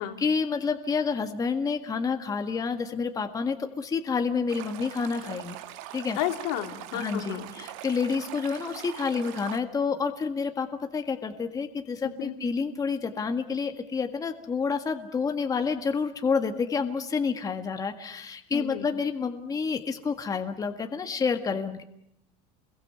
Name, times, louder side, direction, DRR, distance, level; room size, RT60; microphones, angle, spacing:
voice 1, 0.0-5.6 5.9-6.2 6.9-21.8, left 5 dB, 20° left, 6 dB, 1.7 m, -29 dB
Stream, 4.5-9.6, right 13 dB, 75° right, 2.1 m, -42 dB
voice 2, 6.2-7.5 12.0-12.3 18.5-18.9, left 10 dB, 75° left, 5 dB, 3.2 m, -32 dB
29.0 x 22.0 x 8.0 m, 0.73 s
cardioid pair, 145°, 18 cm